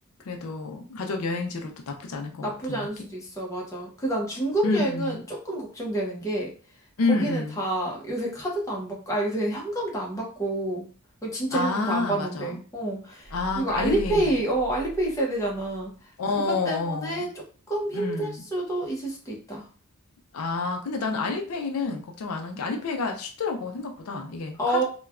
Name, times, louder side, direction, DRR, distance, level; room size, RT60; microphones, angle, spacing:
voice 1, 0.2-2.9 4.6-5.2 7.0-7.6 11.5-12.6 13.3-14.3 16.2-17.3 17.9-18.4 20.3-24.8, left 3 dB, 75° left, 3 dB, 0.4 m, -29 dB
voice 2, 2.4-6.5 7.1-10.9 11.2-17.3 17.7-19.6 24.6-24.8, right 1 dB, 15° left, -2 dB, 0.7 m, -28 dB
sound 1, 13.2-15.9, right 1 dB, 30° right, 0.4 m, -41 dB
3.1 x 2.2 x 2.3 m, 0.39 s
head